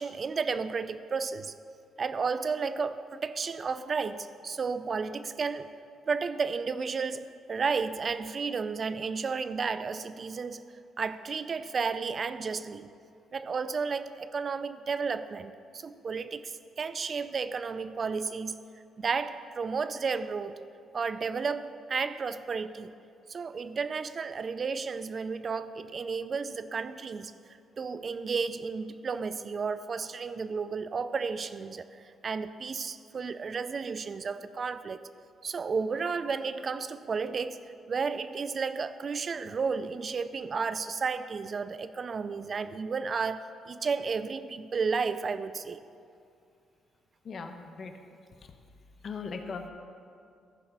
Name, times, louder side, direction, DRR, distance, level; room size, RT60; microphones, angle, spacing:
voice 1, 0.0-1.5 2.0-5.7 6.1-10.6 11.0-12.9 13.3-18.6 19.0-20.6 20.9-22.9 23.3-27.3 27.8-31.9 32.2-35.0 35.4-45.8, right 5 dB, 45° right, 13 dB, 0.4 m, -32 dB
voice 2, 47.2-47.9 49.0-49.7, left 5 dB, 50° left, 6 dB, 1.0 m, -38 dB
14.5 x 5.2 x 5.9 m, 2.4 s
cardioid pair, 90°, 0 cm